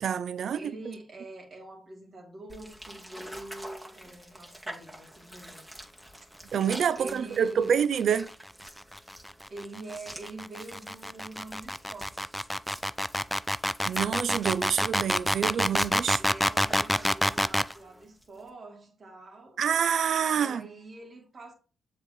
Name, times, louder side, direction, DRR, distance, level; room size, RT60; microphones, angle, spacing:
voice 1, 0.0-0.7 6.5-8.3 13.8-16.2 19.6-20.7, right 8 dB, 65° right, 0.5 m, -27 dB
voice 2, 0.5-5.6 6.9-7.8 9.5-12.4 16.1-19.6 20.3-21.5, right 2 dB, 50° right, 2.9 m, -45 dB
sound 1, 2.5-18.5, right 1 dB, 10° right, 2.1 m, -47 dB
sound 2, 8.5-17.7, equal, 5° left, 0.4 m, -27 dB
7.0 x 4.4 x 4.1 m
supercardioid pair, 50°, 0 cm